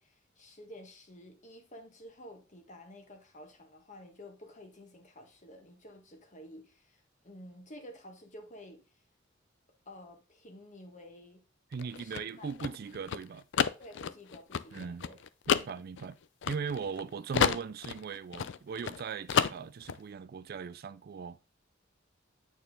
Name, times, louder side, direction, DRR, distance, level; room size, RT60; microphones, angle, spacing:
voice 1, 0.0-8.8 9.8-11.4 11.9-12.7 13.8-15.2, left 1 dB, 40° left, 1.5 m, -51 dB
sound 1, 11.7-17.0 17.3-19.0 19.3-20.0, left 7 dB, 60° left, 0.4 m, -30 dB
voice 2, 11.7-13.4 14.7-15.0 15.5-16.2 16.5-21.4, right 6 dB, 50° right, 0.4 m, -39 dB
8.4 x 4.5 x 3.6 m
head